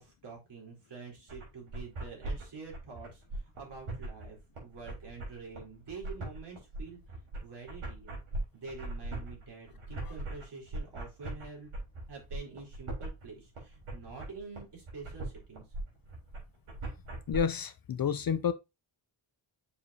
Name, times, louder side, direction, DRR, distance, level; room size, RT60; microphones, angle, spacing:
voice 1, 0.0-3.2 3.6-7.0 7.4-8.2 8.5-11.7 12.1-15.6, right 4 dB, 55° right, 3.8 m, -47 dB
sound 1, 1.3-17.4, right 1 dB, 80° right, 3.7 m, -40 dB
voice 2, 17.3-18.5, left 7 dB, 45° left, 0.6 m, -30 dB
6.9 x 5.0 x 2.8 m
cardioid pair, 80°, 50 cm